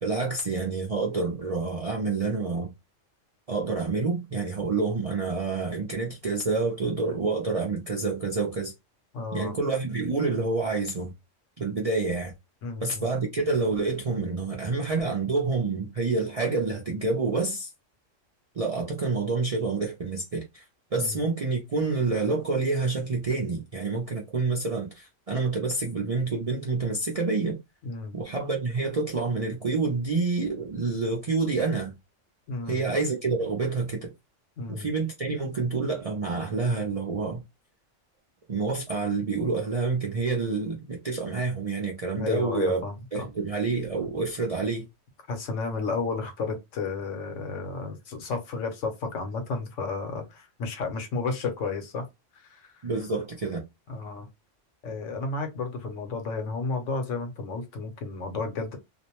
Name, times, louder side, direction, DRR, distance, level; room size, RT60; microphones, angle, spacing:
voice 1, 0.0-2.7 3.5-8.7 9.3-11.1 11.6-12.3 12.8-17.7 18.5-20.6 20.9-27.6 28.1-31.9 32.7-34.1 34.7-37.4 38.5-42.8 43.1-44.9 52.8-53.6, right 3 dB, 50° right, 0.4 m, -28 dB
voice 2, 9.1-9.5 12.6-13.1 20.9-21.2 27.8-28.2 32.5-32.9 34.6-34.9 42.1-43.3 45.3-52.0 52.3-52.8 53.9-54.3 54.8-58.8, left 4 dB, 80° left, 1.1 m, -32 dB
2.5 x 2.1 x 2.8 m
omnidirectional pair, 1.3 m